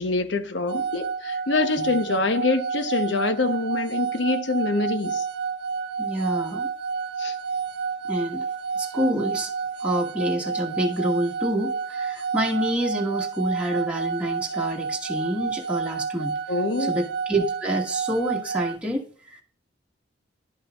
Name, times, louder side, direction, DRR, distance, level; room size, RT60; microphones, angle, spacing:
voice 1, 0.0-5.2 7.2-7.3 16.5-17.0, left 3 dB, 75° left, 0.8 m, -25 dB
sound 1, 0.7-18.8, right 6 dB, 60° right, 0.5 m, -30 dB
voice 2, 6.0-6.7 8.1-8.4 8.7-9.5 9.8-16.4 16.8-19.4, right 1 dB, 5° right, 1.3 m, -27 dB
11.5 x 5.5 x 2.4 m
head